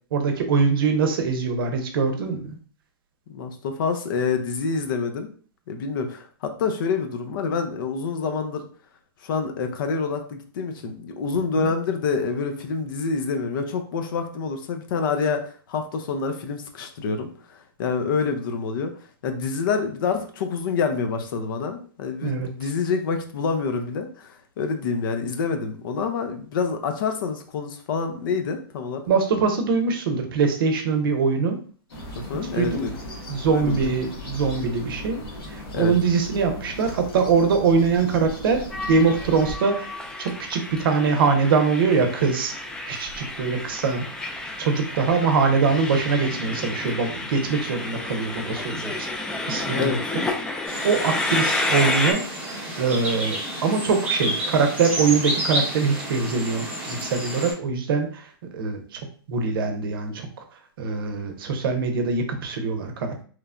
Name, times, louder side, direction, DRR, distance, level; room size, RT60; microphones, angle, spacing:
voice 1, 0.1-2.6 11.6-11.7 22.2-22.7 29.1-31.6 32.6-32.9 33.3-35.2 35.5-39.9 40.2-42.5 42.9-44.0 44.6-50.2 50.8-58.3 58.5-59.0 59.3-60.3 60.8-63.2, right 5 dB, 65° right, 6 dB, 0.6 m, -23 dB
voice 2, 3.3-5.3 5.7-8.7 9.2-18.9 19.2-29.0 32.1-32.9 33.5-33.9 35.7-35.9 49.7-50.0, left 5 dB, 60° left, 6 dB, 0.6 m, -27 dB
sound 1, 31.9-39.6, equal, 80° left, 1.2 m, -37 dB
Train, 38.7-52.1, left 2 dB, 5° left, 0.3 m, -30 dB
sound 2, 50.7-57.5, right 1 dB, 10° right, 0.9 m, -30 dB
3.1 x 2.1 x 2.4 m, 0.44 s
hypercardioid pair, 135°, 13 cm